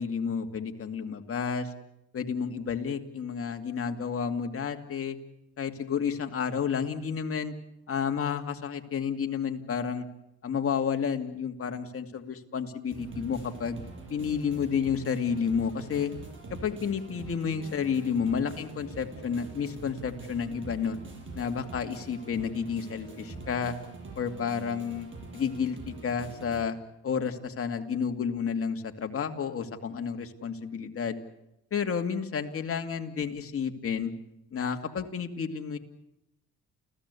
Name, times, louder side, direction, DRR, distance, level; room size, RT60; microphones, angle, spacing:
voice 1, 0.0-1.7 2.1-5.2 5.6-7.5 7.9-10.1 10.4-13.8 14.1-16.1 16.5-21.0 21.3-23.7 24.2-25.1 25.3-26.8 27.0-31.2 31.7-34.1 34.5-35.8, left 6 dB, 50° left, 5 dB, 2.4 m, -31 dB
sound 1, 12.9-26.6, right 3 dB, 40° right, 8.0 m, -44 dB
29.5 x 16.0 x 8.4 m, 0.88 s
cardioid pair, 90°, 30 cm